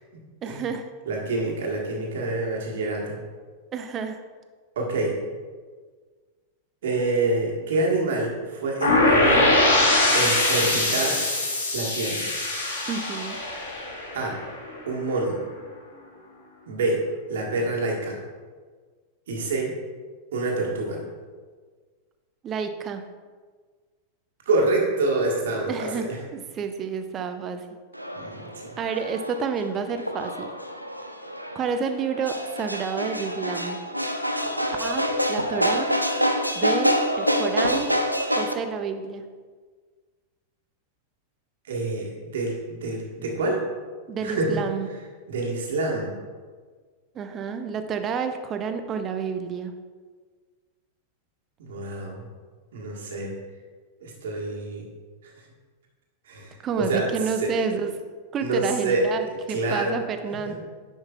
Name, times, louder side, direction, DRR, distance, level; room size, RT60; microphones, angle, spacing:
voice 1, 0.4-0.9 3.7-4.2 12.9-13.4 22.4-23.0 25.7-27.7 28.8-30.5 31.5-33.8 34.8-35.9 36.5-37.9 38.4-39.2 44.1-44.9 47.1-49.7 56.6-57.9 58.3-60.5, right 6 dB, 30° right, 8 dB, 0.6 m, -29 dB
voice 2, 1.1-3.2 4.7-5.2 6.8-9.6 10.1-11.2 11.7-12.3 14.1-14.4 14.9-15.4 16.7-17.0 17.3-18.2 19.3-19.7 20.3-21.0 24.4-26.2 28.1-28.7 41.7-43.6 44.2-44.6 45.3-46.2 51.6-52.2 52.7-53.4 54.0-54.9 56.2-57.1 57.4-57.5 58.4-59.0 59.5-59.9 60.5-60.6, right 2 dB, 60° right, -1 dB, 1.5 m, -27 dB
sound 1, 8.8-14.7, left 2 dB, 70° left, 1.3 m, -22 dB
sound 2, 27.9-38.5, equal, 90° right, 0.4 m, -27 dB
9.6 x 5.4 x 2.4 m, 1.5 s
figure-of-eight pair, 90°, 0 cm